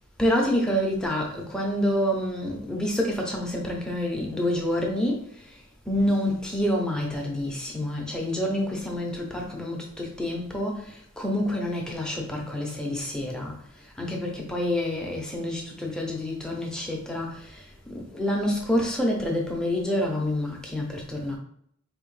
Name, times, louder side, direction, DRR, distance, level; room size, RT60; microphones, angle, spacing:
voice 1, 0.2-5.6 5.9-21.4, left 1 dB, 5° left, -1 dB, 0.7 m, -28 dB
4.3 x 3.0 x 3.2 m, 0.67 s
head